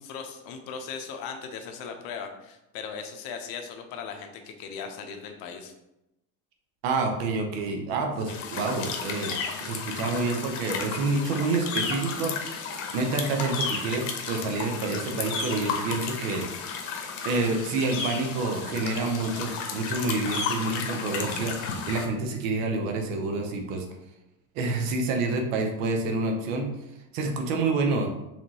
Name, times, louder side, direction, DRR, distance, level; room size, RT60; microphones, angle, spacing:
voice 1, 0.0-5.7 8.3-8.4, left 6 dB, 65° left, 5 dB, 0.8 m, -38 dB
voice 2, 6.8-12.3 12.9-16.4 17.2-21.5 21.9-23.9 24.5-26.7 27.1-28.1, right 3 dB, 90° right, 3 dB, 0.9 m, -28 dB
sound 1, 8.3-22.1, left 5 dB, 90° left, 0.9 m, -33 dB
5.0 x 3.5 x 2.9 m, 0.90 s
supercardioid pair, 120°, 38 cm